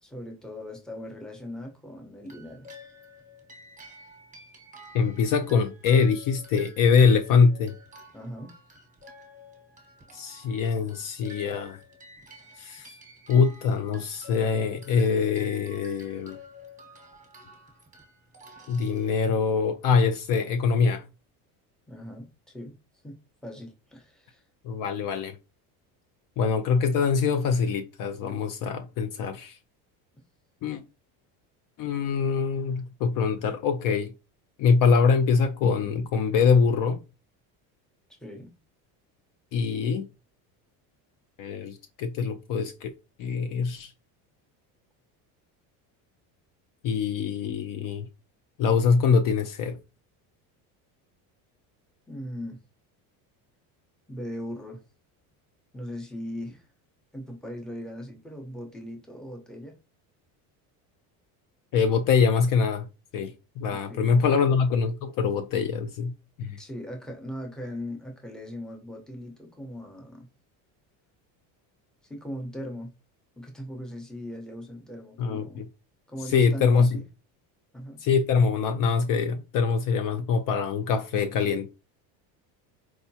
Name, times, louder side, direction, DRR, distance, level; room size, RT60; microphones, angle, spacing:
voice 1, 0.0-2.7 8.1-8.5 21.9-22.8 23.0-23.2 23.4-24.4 38.2-38.5 52.1-52.6 54.1-54.8 55.7-56.7 57.1-59.8 63.7-64.5 66.6-70.3 72.1-72.9 73.4-75.6 76.1-77.0 77.7-78.0, equal, ahead, 0.8 m, -39 dB
sound 1, 2.2-19.6, left 1 dB, 15° right, 1.1 m, -50 dB
voice 2, 4.9-7.7 10.1-11.8 12.6-12.9 13.3-16.4 18.7-21.0 24.6-25.4 26.4-29.6 30.6-30.8 31.8-34.1 34.6-37.0 39.5-40.1 41.4-42.9 43.2-43.9 46.8-48.1 48.6-49.8 61.7-62.9 63.1-66.1 66.4-66.6 75.2-75.7 76.3-77.0 78.0-81.7, left 5 dB, 50° left, 0.5 m, -24 dB
4.6 x 2.1 x 2.7 m
supercardioid pair, 115°, 43 cm